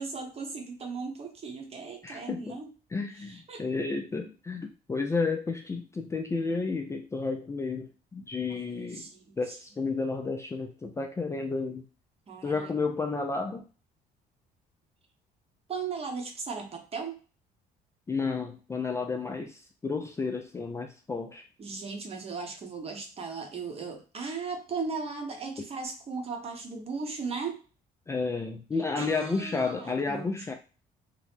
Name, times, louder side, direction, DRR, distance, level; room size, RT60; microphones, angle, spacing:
voice 1, 0.0-2.7 3.2-3.6 8.5-9.4 12.3-12.7 15.7-17.2 21.6-27.6 29.0-30.3, right 4 dB, 35° right, 4 dB, 0.8 m, -37 dB
voice 2, 2.0-2.6 2.9-9.1 9.4-11.9 12.4-13.6 18.1-21.4 28.1-30.5, left 4 dB, 15° left, 3 dB, 0.3 m, -32 dB
2.8 x 2.0 x 3.4 m, 0.35 s
cardioid pair, 110°, 17 cm